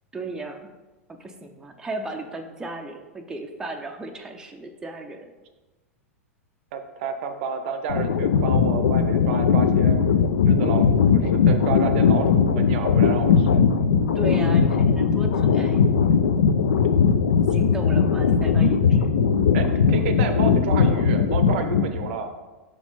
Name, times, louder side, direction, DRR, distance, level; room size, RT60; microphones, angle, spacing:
voice 1, 0.1-0.7 1.1-5.3 14.1-16.0 17.5-19.1, right 2 dB, 10° right, 3 dB, 0.5 m, -35 dB
voice 2, 6.7-10.0 10.5-13.6 19.5-22.3, right 5 dB, 50° right, 8 dB, 0.6 m, -30 dB
sound 1, 7.9-22.1, left 6 dB, 65° left, 0.4 m, -19 dB
6.1 x 4.3 x 4.1 m, 1.2 s
figure-of-eight pair, 95°, 8 cm